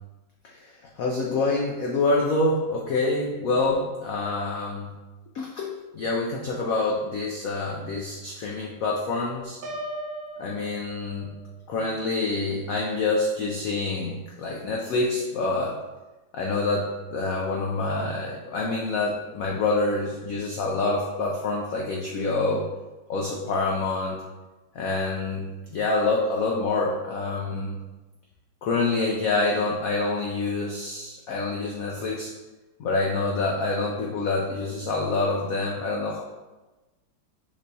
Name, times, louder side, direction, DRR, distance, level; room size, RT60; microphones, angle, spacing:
voice 1, 0.5-4.9 5.3-9.6 10.4-11.3 11.7-15.8 16.3-22.6 23.1-24.2 24.7-27.7 28.6-32.3 32.8-36.2, left 3 dB, 85° left, -2 dB, 0.7 m, -26 dB
Piano, 9.6-11.5, right 1 dB, 85° right, 1.4 m, -37 dB
5.9 x 3.3 x 2.7 m, 1.1 s
omnidirectional pair, 2.1 m